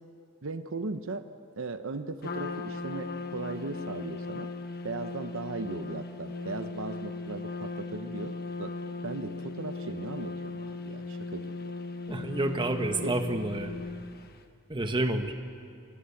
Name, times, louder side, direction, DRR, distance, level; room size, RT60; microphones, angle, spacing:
voice 1, 0.4-1.2 1.6-4.5 4.8-8.7 9.0-11.7 13.0-13.1, right 3 dB, 65° right, 9 dB, 0.9 m, -37 dB
Trumpet, 2.2-14.4, left 3 dB, 50° left, 1.3 m, -38 dB
voice 2, 12.1-13.7 14.7-15.3, right 2 dB, 20° right, 6 dB, 1.3 m, -29 dB
24.0 x 19.0 x 8.5 m, 2.4 s
head